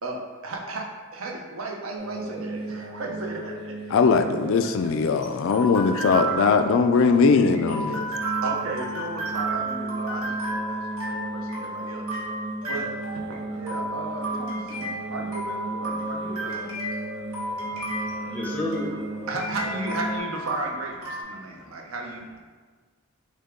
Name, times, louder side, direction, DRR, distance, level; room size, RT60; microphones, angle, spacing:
voice 1, 0.0-4.2 6.0-6.2 7.7-7.8 8.4-12.0 12.6-12.9 13.4-16.7 17.9-18.4 18.9-19.0 19.3-22.4, right 2 dB, 65° right, 0 dB, 0.7 m, -35 dB
sound 1, 2.0-5.5 6.9-20.2, right 2 dB, 25° right, 1.1 m, -35 dB
voice 2, 3.9-8.1, left 5 dB, 60° left, 8 dB, 0.3 m, -20 dB
sound 2, 4.5-21.2, right 2 dB, 80° right, 1.3 m, -33 dB
voice 3, 17.5-19.3 21.4-21.8, left 2 dB, 5° left, -3 dB, 0.6 m, -34 dB
6.3 x 2.3 x 3.6 m, 1.5 s
head